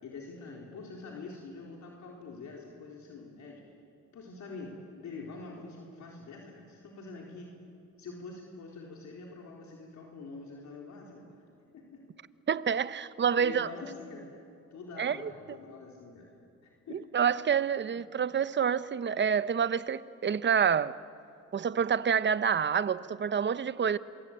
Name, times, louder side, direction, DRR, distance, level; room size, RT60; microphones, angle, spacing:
voice 1, 0.0-3.6 4.1-7.5 8.0-11.4 11.7-12.0 13.4-14.4 14.7-16.3 16.6-17.1, left 3 dB, 65° left, -1 dB, 4.1 m, -45 dB
voice 2, 12.5-13.7 15.0-15.3 16.9-20.9 21.5-24.0, right 7 dB, 40° right, 15 dB, 0.9 m, -28 dB
27.5 x 23.5 x 9.0 m, 2.5 s
cardioid pair, 90°, 30 cm